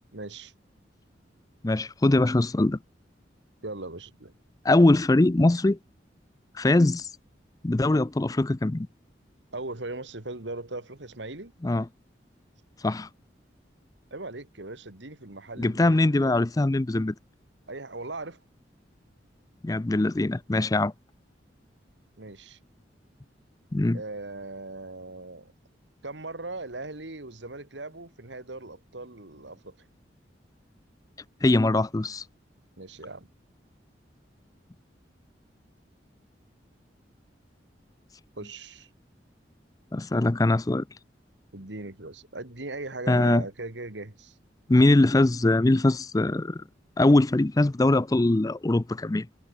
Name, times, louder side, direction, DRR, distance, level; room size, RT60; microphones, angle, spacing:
voice 1, 0.1-0.5 3.6-4.3 9.5-11.5 14.1-16.3 17.7-18.4 22.2-22.6 23.9-25.5 26.0-29.8 32.8-33.3 38.4-38.9 41.5-44.3, right 2 dB, 80° right, 2.6 m, -39 dB
voice 2, 1.6-2.8 4.6-5.8 6.6-7.1 7.6-8.9 11.6-11.9 12.8-13.1 15.6-17.1 19.6-20.9 23.7-24.0 31.4-32.2 39.9-40.8 43.1-43.4 44.7-46.6 47.0-49.3, left 2 dB, 20° left, 0.4 m, -22 dB
head